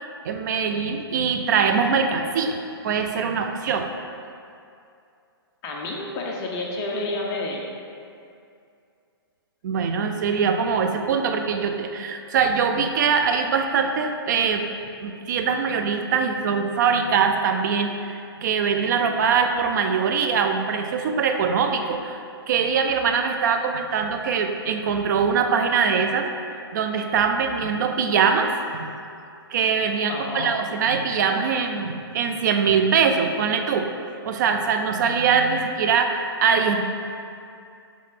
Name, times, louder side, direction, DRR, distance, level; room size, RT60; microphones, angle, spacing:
voice 1, 0.0-2.6 2.8-3.9 9.6-14.6 15.0-26.3 26.7-28.9 29.5-33.9 34.2-36.8, right 6 dB, 45° right, 5 dB, 0.4 m, -22 dB
voice 2, 5.6-7.6 30.1-30.5 35.3-35.5, left 2 dB, 25° left, -2 dB, 0.6 m, -30 dB
3.8 x 3.6 x 3.6 m, 2.5 s
hypercardioid pair, 140°, 13 cm